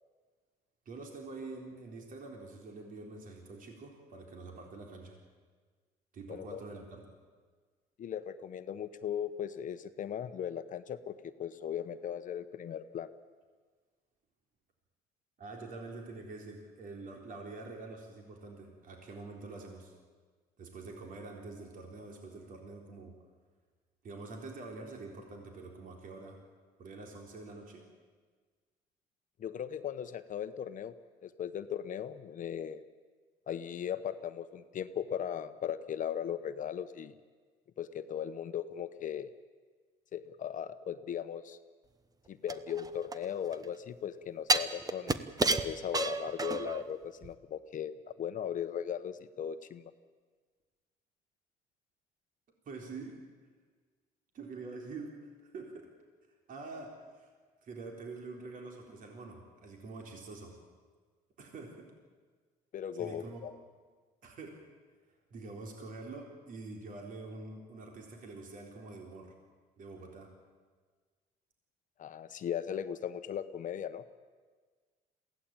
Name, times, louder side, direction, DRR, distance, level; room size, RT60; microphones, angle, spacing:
voice 1, 0.9-5.2 6.1-7.0 15.4-19.9 20.6-23.2 24.0-26.4 26.8-27.9 52.7-53.2 54.3-55.9 56.5-57.3 57.6-60.6 61.4-61.9 63.0-63.5 64.2-64.6 65.3-69.3 69.8-70.3, right 3 dB, 55° right, 1 dB, 3.8 m, -46 dB
voice 2, 6.3-6.6 8.0-11.1 11.4-13.1 29.4-30.9 31.2-32.8 33.5-37.1 37.8-39.3 40.1-41.6 42.3-49.8 62.7-63.5 72.0-74.0, left 9 dB, 50° left, 11 dB, 1.0 m, -38 dB
sound 1, 42.5-43.6 44.5-46.8 47.2-47.3, right 3 dB, 20° right, 1.0 m, -31 dB
22.5 x 16.5 x 8.9 m, 1.5 s
cardioid pair, 110°, 17 cm